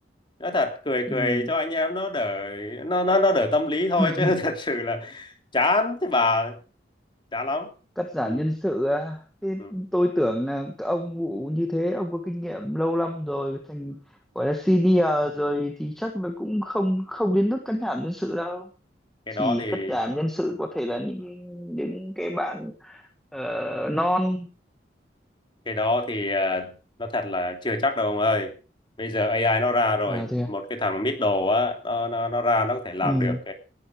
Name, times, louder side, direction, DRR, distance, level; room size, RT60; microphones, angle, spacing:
voice 1, 0.4-6.6 7.3-7.7 8.2-8.4 9.6-9.7 19.3-20.0 25.7-26.7 27.0-28.5 29.0-33.5, left 2 dB, 30° left, 5 dB, 2.9 m, -25 dB
voice 2, 1.1-1.5 4.0-4.3 8.0-14.0 14.3-18.7 19.3-23.0 23.3-24.5 30.1-30.5 33.0-33.4, equal, ahead, 4 dB, 1.5 m, -26 dB
19.0 x 11.0 x 4.8 m, 0.35 s
head